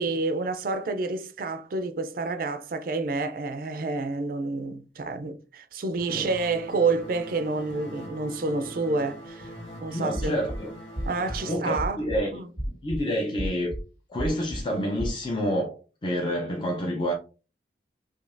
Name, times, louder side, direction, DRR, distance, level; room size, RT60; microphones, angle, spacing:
voice 1, 0.0-9.5 9.8-10.3 11.1-12.0 12.3-12.5, right 3 dB, 50° right, 0.4 m, -29 dB
sound 1, 6.0-11.6, equal, 85° left, 1.5 m, -42 dB
voice 2, 9.9-10.7 11.5-12.3 12.8-13.7 14.1-17.1, equal, 25° left, 0.7 m, -28 dB
sound 2, 10.1-10.6 10.9-11.4 11.8-12.2 12.6-13.0 13.4-13.8 14.2-14.6 15.0-15.2, equal, 60° left, 2.0 m, -31 dB
5.1 x 2.8 x 2.6 m
head